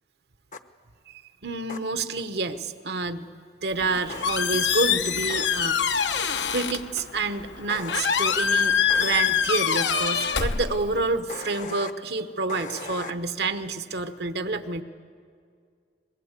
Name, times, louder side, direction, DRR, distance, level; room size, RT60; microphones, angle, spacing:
sound 1, 0.5-0.6 1.7-1.8 4.1-4.3 5.3-5.5 7.7-8.0 8.9-9.2 11.3-11.9 12.5-13.1, left 4 dB, 45° left, 0.8 m, -37 dB
voice 1, 1.1-3.3 3.6-6.0 6.5-14.8, right 3 dB, 65° right, 9 dB, 1.1 m, -28 dB
Squeak, 3.7-11.2, left 7 dB, 80° left, 1.0 m, -25 dB
24.0 x 21.0 x 8.3 m, 2.2 s
head